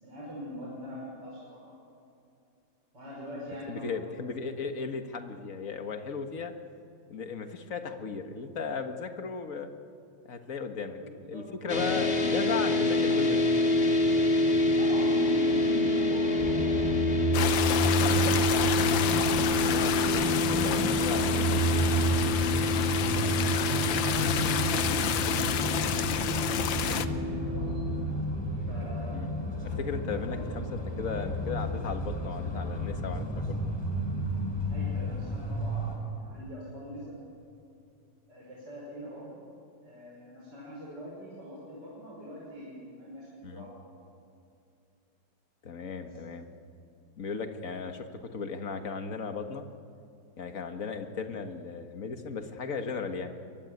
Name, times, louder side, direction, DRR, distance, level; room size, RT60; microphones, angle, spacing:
voice 1, 0.0-1.6 2.9-3.8 4.2-4.4 11.0-12.2 14.7-16.7 23.5-27.8 28.5-29.4 30.1-30.5 34.7-37.1 38.3-39.4 39.8-43.7 46.0-46.1 51.1-51.2, equal, 65° right, -5 dB, 6.3 m, -43 dB
voice 2, 3.7-6.5 7.1-9.7 10.3-11.0 11.3-13.5 19.6-21.8 29.1-29.3 29.6-33.6 43.4-43.7 45.6-46.5 47.2-49.7 50.4-53.3, left 5 dB, 45° left, 6 dB, 1.8 m, -36 dB
sound 1, 11.7-28.0, left 2 dB, 30° left, 2.0 m, -27 dB
sound 2, 16.4-36.0, right 1 dB, 15° left, 4.6 m, -31 dB
sound 3, 17.3-27.1, left 9 dB, 85° left, 1.6 m, -30 dB
23.5 x 23.0 x 9.5 m, 2.5 s
omnidirectional pair, 2.0 m